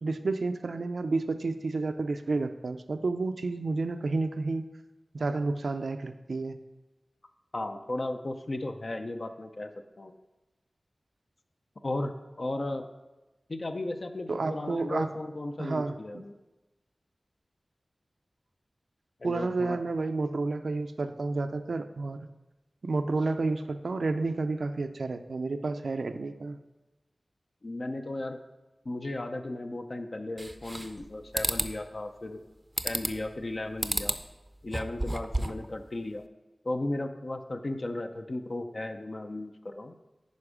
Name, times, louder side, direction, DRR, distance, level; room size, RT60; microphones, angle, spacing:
voice 1, 0.0-4.7 5.1-6.6 14.3-15.1 15.6-16.2 19.2-22.3 22.8-26.6, right 3 dB, 80° right, 9 dB, 0.4 m, -30 dB
voice 2, 7.5-9.7 10.0-10.1 11.8-12.9 13.5-16.3 19.2-19.8 27.6-28.4 28.8-32.4 32.8-34.1 34.6-36.2 36.6-39.9, left 2 dB, 55° left, 6 dB, 0.6 m, -35 dB
sound 1, 30.4-31.0 31.3-31.7 32.8-33.3 33.8-34.2 34.6-35.7, right 1 dB, 20° right, 0.5 m, -31 dB
9.5 x 5.2 x 4.9 m, 1.1 s
wide cardioid pair, 70°, 0 cm